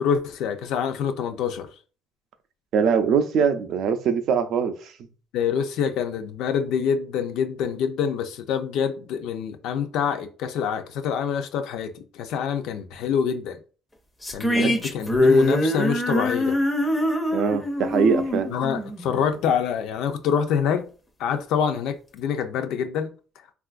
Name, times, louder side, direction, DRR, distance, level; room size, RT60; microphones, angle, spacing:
voice 1, 0.0-1.7 5.3-13.6 14.3-16.6 18.5-20.9 21.2-23.1, left 7 dB, 70° left, 0.4 m, -26 dB
voice 2, 2.7-4.9 14.5-14.7 17.3-18.5, right 6 dB, 55° right, 0.4 m, -22 dB
sound 1, 14.2-19.6, left 1 dB, 10° left, 0.4 m, -23 dB
3.6 x 2.4 x 2.4 m
cardioid pair, 165°, 0 cm